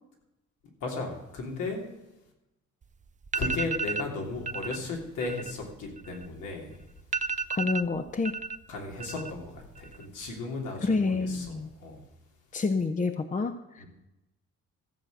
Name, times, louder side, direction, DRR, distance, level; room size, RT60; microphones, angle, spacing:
voice 1, 0.8-2.0 3.3-6.8 8.7-12.0 13.8-13.9, left 3 dB, 85° left, 0 dB, 3.3 m, -35 dB
sound 1, 2.8-2.9 3.2-4.1 4.5-4.8 5.1-6.5 6.8-6.9 7.1-8.6 8.9-9.5 9.8-10.3, right 4 dB, 25° right, 0.6 m, -32 dB
voice 2, 7.5-8.3 10.8-11.7 12.5-13.8, left 4 dB, 25° left, 7 dB, 0.8 m, -28 dB
14.5 x 7.5 x 6.4 m, 0.93 s
cardioid pair, 90°, 30 cm